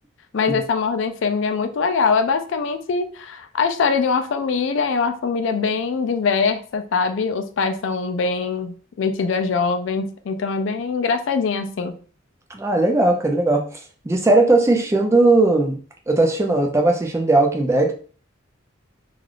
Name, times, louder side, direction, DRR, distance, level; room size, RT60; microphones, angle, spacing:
voice 1, 0.3-11.9, left 5 dB, 65° left, 7 dB, 0.4 m, -22 dB
voice 2, 12.5-15.8 16.1-17.9, right 2 dB, 15° right, 2 dB, 0.3 m, -18 dB
3.2 x 2.4 x 2.4 m, 0.41 s
head